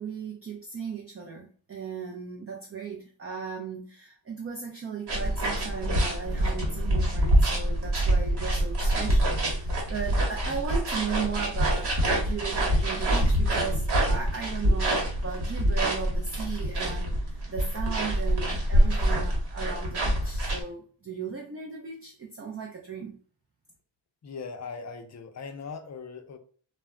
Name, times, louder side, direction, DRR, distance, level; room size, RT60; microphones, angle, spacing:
voice 1, 0.0-17.2 17.5-23.1, right 6 dB, 30° right, 0.4 m, -36 dB
sound 1, 5.1-20.6, right 1 dB, 60° right, 1.1 m, -25 dB
voice 2, 24.2-26.4, left 5 dB, 40° left, 0.5 m, -39 dB
2.2 x 2.1 x 3.6 m
wide cardioid pair, 110°, 44 cm